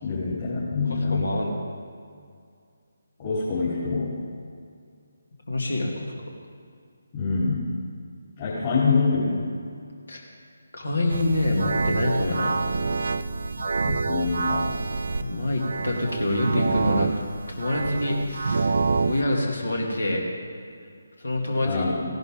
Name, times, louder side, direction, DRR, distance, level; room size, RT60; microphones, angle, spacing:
voice 1, 0.0-1.4 3.2-4.2 7.1-7.7 8.4-9.5 13.8-14.8 21.6-22.0, left 4 dB, 35° left, -10 dB, 4.0 m, -25 dB
voice 2, 0.9-1.6 5.5-6.3 10.1-10.2 10.7-12.6 15.2-17.1 17.5-18.7 19.1-20.2 21.2-21.8, left 1 dB, 70° left, 0 dB, 2.7 m, -26 dB
sound 1, 11.1-19.2, right 4 dB, 55° right, 0.5 m, -27 dB
17.5 x 11.0 x 3.9 m, 2.2 s
figure-of-eight pair, 150°, 0 cm